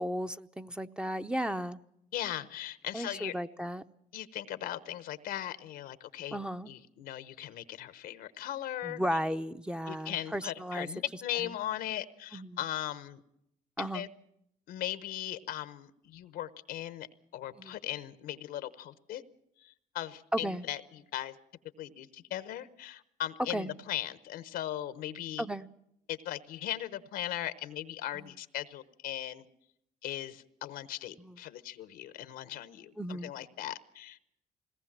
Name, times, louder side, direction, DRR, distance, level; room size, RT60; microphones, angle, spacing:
voice 1, 0.0-1.8 2.9-3.8 6.3-6.7 8.8-10.9 12.3-12.6 13.8-14.1 17.6-17.7 20.3-20.6 23.5-23.7 25.4-25.7 28.1-28.3 31.2-31.3 33.0-33.3, equal, 5° right, 10 dB, 0.7 m, -34 dB
voice 2, 2.1-3.3 4.1-9.0 9.9-13.2 13.8-14.1 14.7-17.1 17.3-19.2 19.6-21.4 21.8-25.5 26.1-29.5 30.0-34.2, left 12 dB, 85° left, 13 dB, 1.0 m, -38 dB
21.0 x 18.0 x 7.4 m, 0.78 s
cardioid pair, 80°, 15 cm